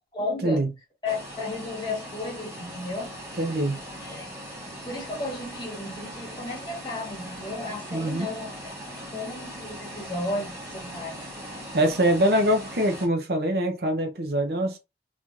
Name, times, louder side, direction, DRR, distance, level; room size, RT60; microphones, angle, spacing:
voice 1, 0.1-0.6 1.0-3.1 4.0-4.3 4.8-8.7 9.1-11.2, left 2 dB, 25° left, 1.3 m, -33 dB
sound 1, 1.1-13.1, equal, 15° right, 1.6 m, -40 dB
voice 2, 3.4-3.8 7.9-8.3 11.7-14.8, right 1 dB, 60° right, 0.8 m, -24 dB
4.0 x 3.1 x 2.5 m
head